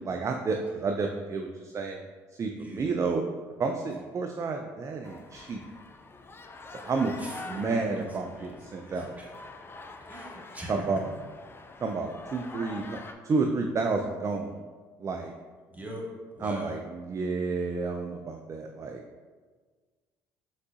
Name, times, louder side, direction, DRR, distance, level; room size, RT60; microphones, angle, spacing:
voice 1, 0.0-2.0 2.4-3.2 3.6-5.6 6.7-9.1 10.7-11.0 11.8-13.0 13.2-14.6 15.0-15.3 16.4-19.0, right 4 dB, 35° right, 3 dB, 0.4 m, -30 dB
voice 2, 2.5-3.0 7.2-8.6 8.8-9.3 10.1-10.9 15.7-16.8, equal, 15° right, -2 dB, 1.3 m, -42 dB
sound 1, 5.0-13.1, left 3 dB, 25° left, 0.5 m, -45 dB
5.3 x 3.8 x 2.5 m, 1.5 s
hypercardioid pair, 60°, 9 cm